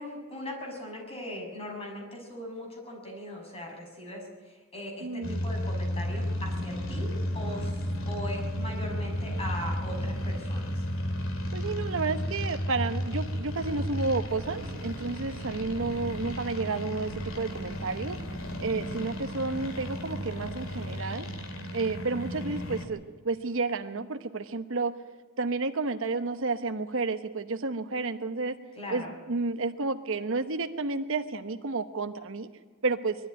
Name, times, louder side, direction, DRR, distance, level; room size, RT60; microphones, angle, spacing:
voice 1, 0.0-7.8 8.1-10.8 28.7-29.1, left 1 dB, 30° left, 0 dB, 6.2 m, -39 dB
voice 2, 5.0-5.4 11.5-18.2 18.6-21.3 21.7-24.9 25.4-28.6 28.9-32.5 32.8-33.2, right 3 dB, 65° right, 8 dB, 1.0 m, -31 dB
sound 1, 5.2-22.8, equal, 70° left, 2.5 m, -33 dB
21.5 x 13.0 x 9.6 m, 1.5 s
head